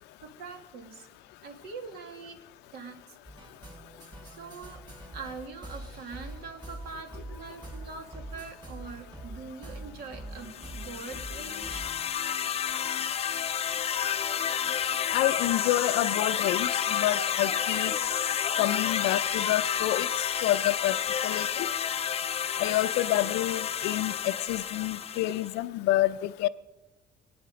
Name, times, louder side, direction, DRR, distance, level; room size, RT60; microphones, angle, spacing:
voice 1, 0.2-1.1 1.4-2.4 2.7-3.2 4.2-4.8 5.1-11.8, right 4 dB, 70° right, 2.1 m, -43 dB
sound 1, 3.2-12.1, right 1 dB, 25° right, 4.8 m, -44 dB
sound 2, 10.5-25.5, left 8 dB, 35° left, 0.5 m, -30 dB
voice 2, 15.1-17.9 18.6-20.1 20.4-21.0 21.2-21.7 22.6-26.5, left 15 dB, 90° left, 0.5 m, -28 dB
23.0 x 9.1 x 5.2 m
cardioid pair, 110°, 17 cm